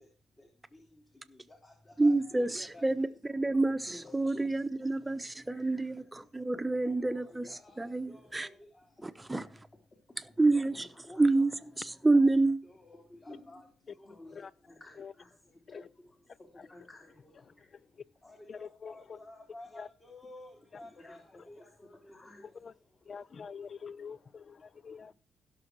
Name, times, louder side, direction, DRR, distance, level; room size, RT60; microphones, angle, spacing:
voice 1, 1.3-1.7 2.0-3.4 3.9-4.5 5.7-5.8 6.8-8.5 9.3-9.4 10.6-11.8 12.1-12.3 12.6-13.6 14.0-14.4 14.8-15.3 16.7-17.1 18.2-22.4, left 1 dB, 25° left, 3.1 m, -51 dB
voice 2, 2.0-7.5 7.8-8.5 9.0-9.5 10.2-10.9 11.2-11.5 11.8-12.6, right 2 dB, 15° right, 1.0 m, -28 dB
voice 3, 18.5-19.2 19.8-19.9 22.6-22.7 23.1-25.1, left 6 dB, 45° left, 0.5 m, -45 dB
16.5 x 6.4 x 4.6 m
cardioid pair, 90°, 0 cm